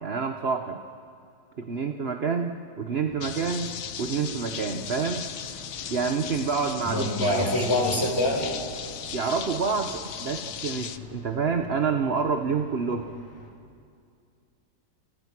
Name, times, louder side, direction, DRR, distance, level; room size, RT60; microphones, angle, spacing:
voice 1, 0.0-0.8 1.6-5.3 5.9-7.5 9.1-13.1, right 5 dB, 40° right, 5 dB, 1.1 m, -28 dB
sound 1, 3.0-13.5, left 1 dB, 85° left, 4.0 m, -46 dB
sound 2, 3.2-11.0, left 8 dB, 55° left, 1.1 m, -37 dB
voice 2, 6.8-8.5, left 1 dB, 15° left, 1 dB, 4.7 m, -25 dB
29.5 x 29.0 x 6.2 m, 2.3 s
omnidirectional pair, 2.0 m